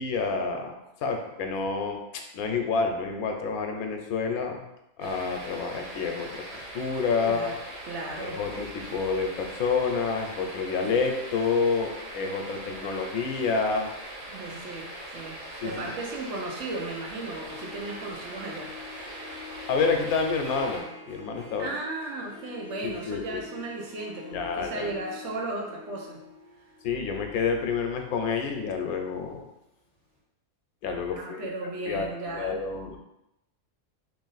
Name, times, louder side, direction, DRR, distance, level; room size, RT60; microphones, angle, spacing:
voice 1, 0.0-2.0 2.3-4.6 5.0-6.4 6.7-7.6 8.2-13.9 15.6-15.9 19.7-21.7 22.8-23.4 24.3-25.0 26.8-29.4 30.8-31.5 31.8-32.1 32.3-33.0, left 5 dB, 90° left, 3 dB, 1.0 m, -28 dB
sound 1, 5.0-20.8, right 1 dB, 85° right, 1.4 m, -41 dB
voice 2, 7.2-7.5 7.9-8.4 14.3-18.7 21.6-26.2 31.1-32.6, right 2 dB, 60° right, -1 dB, 1.0 m, -35 dB
Harp, 15.5-29.4, left 4 dB, 35° right, 1.5 m, -47 dB
3.0 x 2.6 x 3.9 m, 0.89 s
omnidirectional pair, 1.5 m